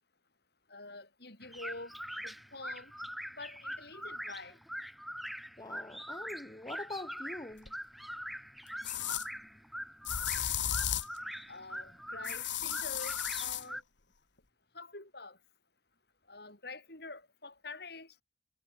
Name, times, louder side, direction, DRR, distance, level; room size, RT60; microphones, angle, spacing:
voice 1, 0.7-2.9 3.4-4.6 11.5-13.8 14.7-15.4 16.3-18.1, left 3 dB, 55° left, 8.0 m, -47 dB
sound 1, 1.4-13.8, equal, ahead, 2.7 m, -43 dB
voice 2, 5.6-7.7, left 2 dB, 20° left, 0.9 m, -44 dB
sound 2, 7.7-7.8 8.8-9.3 10.0-11.2 12.2-13.6, left 10 dB, 75° left, 1.8 m, -34 dB
head